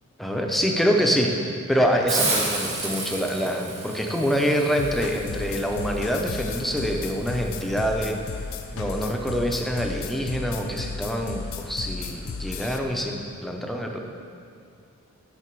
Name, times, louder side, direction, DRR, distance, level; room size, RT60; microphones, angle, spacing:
voice 1, 0.2-8.2 8.7-14.0, equal, ahead, 1 dB, 0.5 m, -25 dB
sound 1, 1.7-13.1, right 2 dB, 70° right, 0.7 m, -47 dB
Hiss, 2.1-7.7, right 3 dB, 30° right, 1.3 m, -32 dB
sound 2, 4.8-12.8, left 5 dB, 65° left, 0.4 m, -35 dB
10.5 x 3.9 x 4.6 m, 2.4 s
head